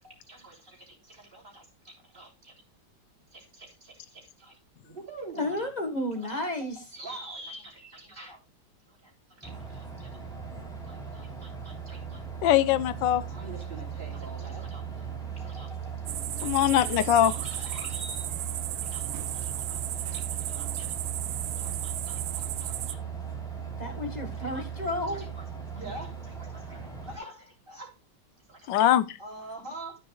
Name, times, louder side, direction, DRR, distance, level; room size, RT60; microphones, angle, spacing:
voice 1, 0.0-2.6 3.3-5.7 6.2-8.4 8.9-10.2 10.8-12.2 13.3-18.3 18.8-20.9 21.5-23.0 24.4-24.7 25.0-28.0 28.4-28.8 29.2-30.0, right 2 dB, 30° right, 3.6 m, -47 dB
voice 2, 5.4-6.8 23.8-25.3, left 1 dB, 25° left, 1.5 m, -32 dB
sound 1, 9.4-27.2, right 7 dB, ahead, 3.4 m, -38 dB
voice 3, 12.4-13.2 16.4-17.3 28.7-29.2, left 11 dB, 85° left, 1.4 m, -22 dB
sound 2, 16.1-22.9, right 13 dB, 80° right, 1.3 m, -35 dB
14.0 x 7.0 x 2.3 m
omnidirectional pair, 2.0 m